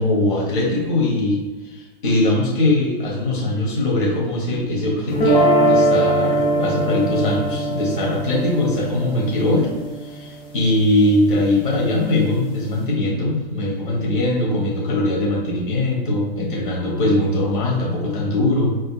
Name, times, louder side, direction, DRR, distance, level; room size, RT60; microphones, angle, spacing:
voice 1, 0.0-9.7 10.0-18.7, left 1 dB, 60° left, -4 dB, 1.4 m, -21 dB
sound 1, 5.1-11.2, right 1 dB, 15° left, 0.5 m, -21 dB
4.2 x 2.9 x 2.3 m, 1.2 s
figure-of-eight pair, 105°, 29 cm